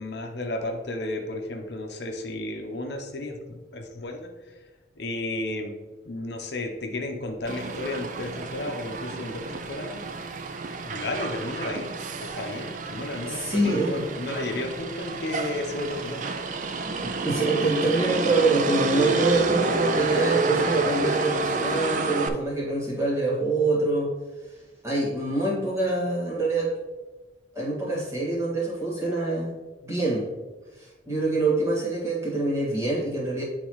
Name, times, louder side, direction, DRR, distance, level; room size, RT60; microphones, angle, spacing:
voice 1, 0.0-4.3 5.0-5.7 6.1-10.0 10.8-11.9 12.2-16.2, left 2 dB, 65° left, 3 dB, 0.8 m, -33 dB
Motor vehicle (road), 7.5-22.3, right 3 dB, 40° right, 0.4 m, -29 dB
voice 2, 13.3-14.0 17.0-24.1 24.8-26.7 27.6-29.6 29.8-30.3 30.8-33.4, right 2 dB, 15° right, -5 dB, 1.7 m, -25 dB
9.1 x 4.0 x 3.1 m, 1.2 s
head